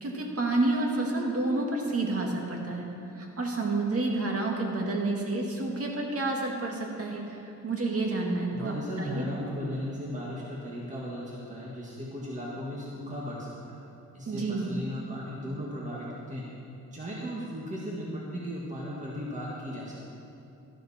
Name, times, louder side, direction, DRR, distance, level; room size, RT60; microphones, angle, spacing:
voice 1, 0.0-2.8 3.2-7.2 7.6-9.3 14.3-14.7, right 2 dB, 50° right, 0 dB, 2.0 m, -29 dB
voice 2, 8.5-13.8 14.1-16.4 16.9-20.0, equal, 25° right, -5 dB, 1.7 m, -36 dB
13.0 x 12.0 x 4.3 m, 2.7 s
wide cardioid pair, 130°, 31 cm